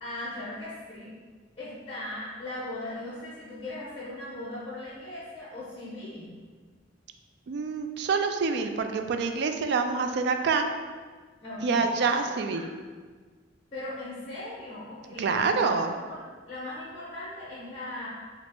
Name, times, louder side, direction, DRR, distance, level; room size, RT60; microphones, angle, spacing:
voice 1, 0.0-1.2 1.6-6.3 11.4-12.8 13.7-18.1, left 1 dB, 35° left, -7 dB, 0.7 m, -39 dB
voice 2, 7.5-10.7 11.6-12.7 15.2-15.9, right 4 dB, 60° right, 6 dB, 0.3 m, -26 dB
4.9 x 2.0 x 3.5 m, 1.5 s
head